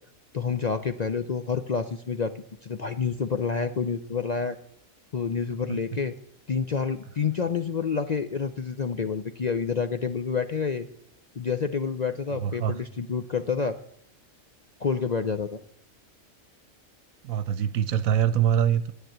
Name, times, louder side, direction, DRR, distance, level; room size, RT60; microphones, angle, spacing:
voice 1, 0.3-2.3 2.6-4.6 5.1-6.1 6.5-10.9 11.4-13.8 14.8-15.6, left 5 dB, 50° left, 0.5 m, -28 dB
voice 2, 12.4-12.8 17.2-18.9, right 9 dB, 80° right, 1.1 m, -24 dB
10.5 x 9.9 x 7.9 m
omnidirectional pair, 1.5 m